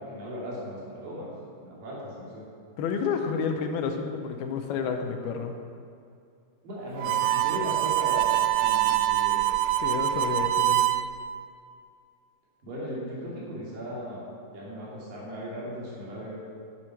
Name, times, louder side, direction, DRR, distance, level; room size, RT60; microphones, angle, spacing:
voice 1, 0.0-1.3 1.6-2.4 6.6-9.4 12.6-14.3 14.5-16.4, equal, 60° right, -6 dB, 4.4 m, -37 dB
voice 2, 2.8-5.6 9.8-10.9, left 6 dB, 75° left, 5 dB, 2.6 m, -30 dB
Harmonica, 7.0-11.0, right 13 dB, 85° right, 2.3 m, -24 dB
12.5 x 7.2 x 5.9 m, 2.3 s
omnidirectional pair, 4.7 m